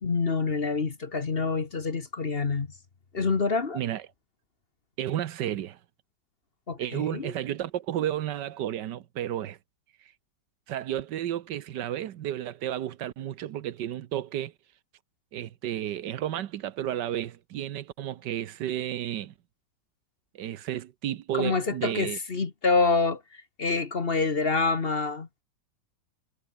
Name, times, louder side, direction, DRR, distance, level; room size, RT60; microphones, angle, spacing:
voice 1, 0.0-2.7 3.1-3.8 6.7-7.3 21.3-25.3, left 4 dB, 35° left, 1.5 m, -27 dB
voice 2, 5.0-5.8 6.8-9.6 10.7-14.5 15.3-19.3 20.3-22.2, right 11 dB, 80° right, 1.5 m, -32 dB
omnidirectional pair, 1.9 m